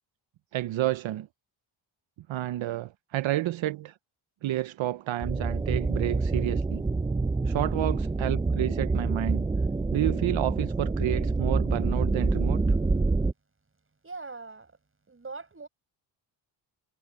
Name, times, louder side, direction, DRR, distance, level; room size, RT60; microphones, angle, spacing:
voice 1, 0.5-1.3 2.3-4.0 4.4-6.8 7.5-9.5 9.9-12.6, right 14 dB, 75° right, 0.7 m, -30 dB
sound 1, 5.2-13.3, right 3 dB, 10° right, 0.4 m, -27 dB
voice 2, 14.0-14.8 15.1-15.7, right 3 dB, 25° right, 5.6 m, -41 dB
cardioid pair, 105°, 47 cm